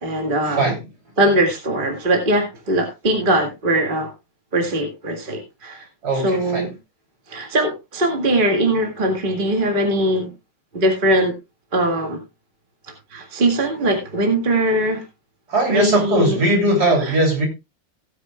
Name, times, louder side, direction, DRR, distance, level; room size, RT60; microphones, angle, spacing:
voice 1, 0.0-0.6 1.2-4.1 4.5-5.8 6.2-6.7 7.3-10.3 10.7-11.3 11.7-12.2 13.1-15.0 15.7-16.4 17.0-17.2, right 1 dB, 25° right, 2.0 m, -20 dB
voice 2, 6.0-6.7 15.5-17.5, right 1 dB, 50° right, 3.7 m, -19 dB
17.0 x 9.6 x 2.3 m
omnidirectional pair, 2.2 m